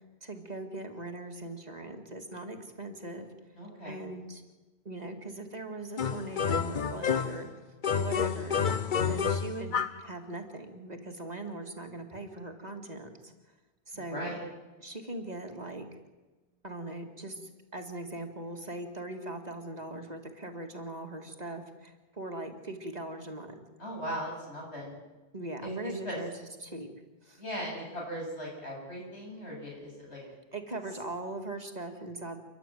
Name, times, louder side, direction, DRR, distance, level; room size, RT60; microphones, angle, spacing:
voice 1, 0.2-3.3 3.8-4.4 4.8-7.5 8.0-8.6 9.1-13.3 13.9-14.4 14.8-15.9 16.6-23.6 25.3-26.9 27.2-27.4 30.1-32.4, right 2 dB, 40° right, 4 dB, 2.3 m, -40 dB
voice 2, 3.6-4.0 8.9-9.4 14.1-14.4 23.8-25.0 25.6-26.2 27.4-30.2, equal, 90° left, -2 dB, 8.5 m, -38 dB
sound 1, 6.0-7.5 7.8-10.1, left 7 dB, 50° left, 1.0 m, -29 dB
29.5 x 12.0 x 9.3 m, 1.2 s
omnidirectional pair, 1.1 m